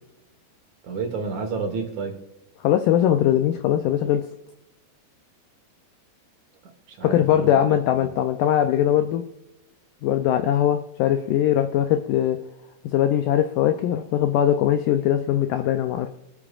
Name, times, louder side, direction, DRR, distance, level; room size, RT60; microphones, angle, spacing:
voice 1, 0.8-2.1 6.9-7.8, right 4 dB, 60° right, 4 dB, 2.4 m, -30 dB
voice 2, 2.6-4.3 7.0-9.2 10.0-12.4 12.9-16.1, left 11 dB, 80° left, 7 dB, 1.9 m, -21 dB
24.0 x 8.7 x 2.4 m, 0.88 s
omnidirectional pair, 4.4 m